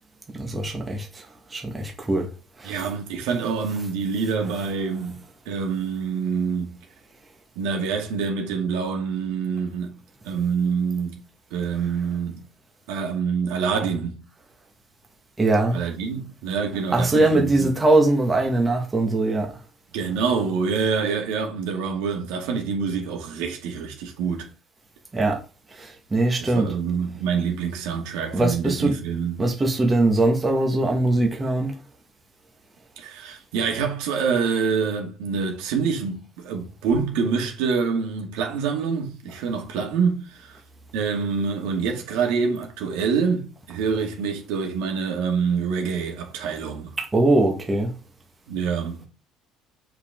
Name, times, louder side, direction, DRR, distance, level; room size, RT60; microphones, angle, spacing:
voice 1, 0.4-1.2 1.5-2.3 2.6-2.8 15.4-15.8 16.9-19.5 25.1-25.4 25.7-26.7 28.3-28.9 29.4-31.7 47.0-47.9, right 2 dB, 15° right, 1.6 m, -21 dB
voice 2, 2.6-5.2 5.5-6.8 7.6-10.0 10.2-11.2 11.5-12.4 12.9-14.2 15.7-17.7 19.9-24.5 26.4-29.4 33.0-40.6 40.9-46.9 48.5-49.1, right 5 dB, 85° right, 2.4 m, -26 dB
8.1 x 5.1 x 3.7 m
cardioid pair, 165°, 0 cm